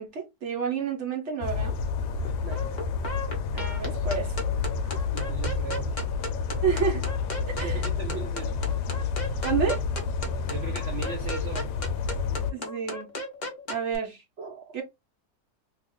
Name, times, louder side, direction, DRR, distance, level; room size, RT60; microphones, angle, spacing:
voice 1, 0.0-1.8 3.5-4.3 6.6-7.1 7.6-7.8 9.4-9.8 12.5-13.1 13.7-14.2 14.7-14.8, right 6 dB, 50° right, 1.1 m, -29 dB
sound 1, 1.4-12.5, left 5 dB, 75° left, 1.1 m, -29 dB
sound 2, 2.2-14.0, left 2 dB, 40° left, 0.6 m, -37 dB
voice 2, 5.1-6.0 7.5-8.8 10.5-11.7 14.4-14.8, right 5 dB, 70° right, 0.6 m, -38 dB
2.9 x 2.4 x 3.6 m
omnidirectional pair, 1.8 m